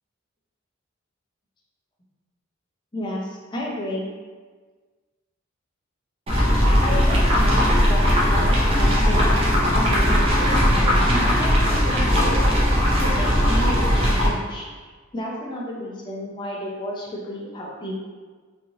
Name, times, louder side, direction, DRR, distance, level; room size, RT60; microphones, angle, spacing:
voice 1, 2.9-4.1 6.8-9.3 9.7-12.5 13.0-14.7 15.1-18.1, left 1 dB, 25° left, -3 dB, 0.5 m, -32 dB
sound 1, 6.3-14.3, equal, 30° right, 0.6 m, -18 dB
3.1 x 2.5 x 2.7 m, 1.5 s
head